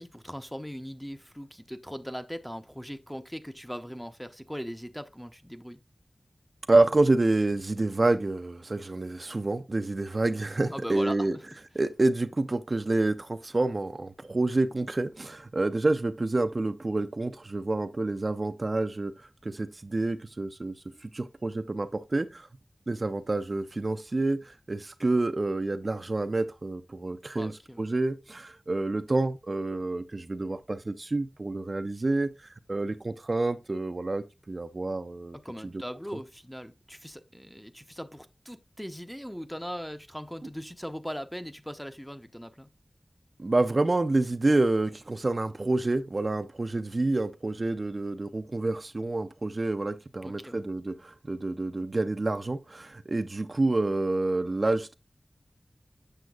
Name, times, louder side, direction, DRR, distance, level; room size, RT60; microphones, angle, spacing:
voice 1, 0.0-5.8 10.7-11.6 27.3-27.9 35.3-42.7 50.2-50.7, equal, 5° left, 0.6 m, -40 dB
voice 2, 6.7-11.4 11.8-19.1 19.4-20.7 21.0-22.5 22.9-27.5 27.8-32.3 32.7-35.4 43.4-54.9, right 2 dB, 50° right, 0.5 m, -28 dB
7.7 x 6.2 x 2.3 m
wide cardioid pair, 70°, 0 cm